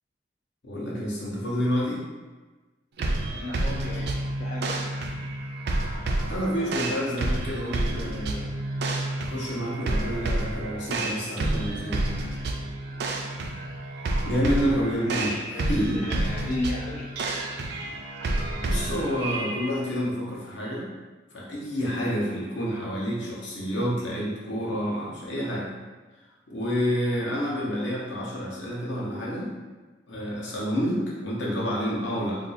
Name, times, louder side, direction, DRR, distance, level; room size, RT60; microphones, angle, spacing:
voice 1, 0.6-2.0 3.9-4.1 6.3-8.6 9.2-12.1 14.2-16.1 18.6-20.9 21.3-25.7 26.5-29.5 30.1-32.4, equal, 70° left, -5 dB, 0.9 m, -29 dB
sound 1, 3.0-19.7, right 2 dB, 55° right, 0.4 m, -29 dB
voice 2, 3.4-5.0 15.0-17.1, left 2 dB, 40° left, -4 dB, 0.3 m, -34 dB
2.6 x 2.3 x 4.0 m, 1.3 s
head